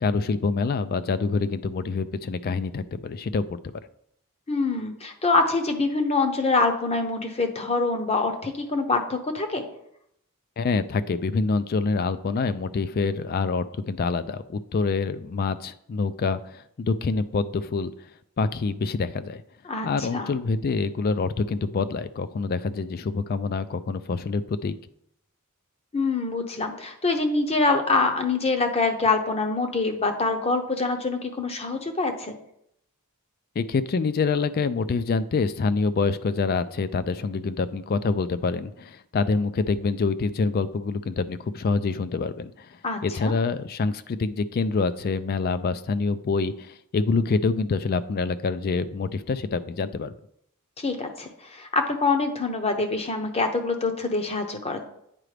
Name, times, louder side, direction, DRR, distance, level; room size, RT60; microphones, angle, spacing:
voice 1, 0.0-3.6 10.6-17.9 18.4-19.4 19.8-24.8 33.6-42.7 43.0-50.1, left 4 dB, 45° left, 14 dB, 0.3 m, -26 dB
voice 2, 4.5-9.6 19.7-20.3 25.9-32.3 42.8-43.3 50.8-54.8, left 3 dB, 25° left, 5 dB, 0.7 m, -25 dB
9.0 x 4.9 x 3.3 m, 0.74 s
head